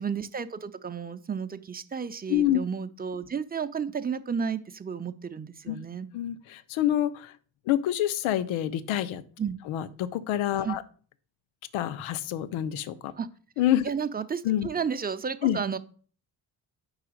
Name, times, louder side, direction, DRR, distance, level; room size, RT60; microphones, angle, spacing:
voice 1, 0.0-6.1 9.4-9.6 10.6-10.8 13.2-13.3 13.8-15.8, right 6 dB, 20° right, 10 dB, 0.6 m, -32 dB
voice 2, 6.1-7.3 7.7-9.2 9.7-10.8 11.7-13.1 13.6-13.8 14.4-14.7 15.4-15.6, left 12 dB, 85° left, 15 dB, 0.6 m, -27 dB
4.8 x 3.9 x 5.0 m, 0.43 s
supercardioid pair, 50°, 47 cm